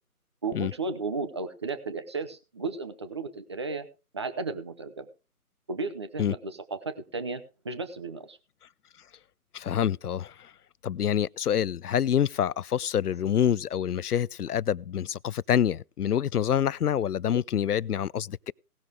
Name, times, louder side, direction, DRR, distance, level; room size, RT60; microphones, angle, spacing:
voice 1, 0.4-3.9 4.1-5.1 5.7-8.4, right 3 dB, 20° right, 0.7 m, -34 dB
voice 2, 9.5-10.5 10.8-18.5, left 9 dB, 85° left, 0.5 m, -26 dB
18.0 x 6.3 x 4.9 m
figure-of-eight pair, 150°, 45 cm